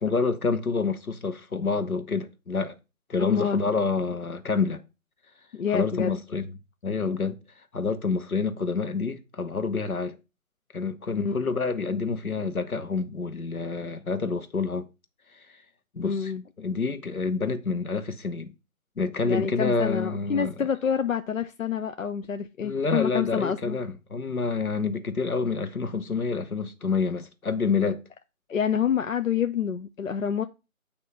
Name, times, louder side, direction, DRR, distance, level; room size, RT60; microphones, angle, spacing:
voice 1, 0.0-2.8 3.1-4.8 5.7-6.5 6.8-7.4 7.7-10.2 10.7-14.9 15.3-15.5 15.9-16.3 16.6-18.5 19.0-20.5 22.6-28.0, left 4 dB, 80° left, 1.2 m, -28 dB
voice 2, 3.2-3.6 5.5-6.2 11.2-11.3 16.0-16.4 19.2-23.8 28.5-30.4, left 7 dB, 65° left, 0.6 m, -27 dB
8.7 x 2.9 x 5.6 m
figure-of-eight pair, 155°, 42 cm